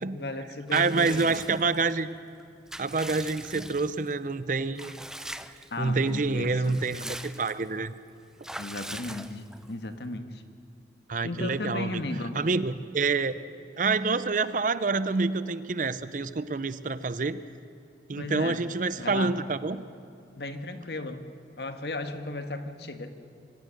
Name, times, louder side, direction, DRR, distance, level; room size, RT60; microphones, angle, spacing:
voice 1, 0.1-1.6 5.7-6.8 8.6-10.4 11.2-12.4 18.1-18.6 19.0-19.3 20.4-21.3 21.6-23.1, left 2 dB, 70° left, 8 dB, 1.4 m, -35 dB
Water / Bathtub (filling or washing) / Liquid, 0.7-1.9 2.4-4.1 4.8-5.7 6.1-6.2 6.5-7.7 8.4-9.7, right 1 dB, 5° right, 0.5 m, -41 dB
voice 2, 0.7-2.1 2.8-5.0 5.8-7.9 11.1-12.0 12.3-13.4 13.8-17.4 18.1-19.9, right 4 dB, 45° right, 15 dB, 0.6 m, -27 dB
24.0 x 16.5 x 6.4 m, 2.7 s
head